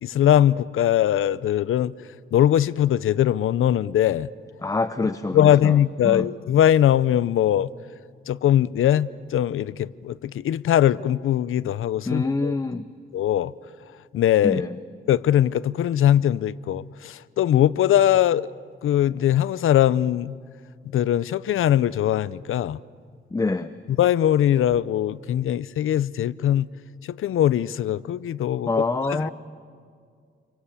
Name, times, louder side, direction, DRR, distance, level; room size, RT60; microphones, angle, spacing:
voice 1, 0.0-1.9 2.3-4.3 5.3-7.7 8.3-12.5 13.1-13.5 14.1-14.6 15.1-18.5 18.8-20.3 20.9-22.8 24.0-26.7 27.2-28.7 29.1-29.3, left 11 dB, 85° left, 0.6 m, -21 dB
voice 2, 4.6-5.8 6.0-6.3 12.1-12.9 14.4-14.8 23.3-23.7 28.6-29.3, left 3 dB, 15° left, 0.7 m, -25 dB
28.5 x 24.0 x 8.3 m
wide cardioid pair, 130°, 21 cm